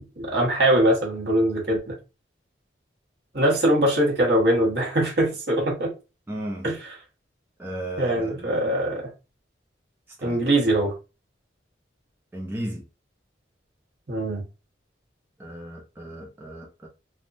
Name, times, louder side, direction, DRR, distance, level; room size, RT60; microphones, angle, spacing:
voice 1, 0.0-2.0 3.3-5.9 6.6-6.9 8.0-9.1 10.2-10.9 14.1-14.4, right 1 dB, 65° right, 1.2 m, -22 dB
voice 2, 6.3-6.7 7.6-8.6 10.2-10.4 12.3-12.8 15.4-16.9, right 1 dB, 10° right, 0.5 m, -35 dB
3.4 x 2.1 x 2.5 m
head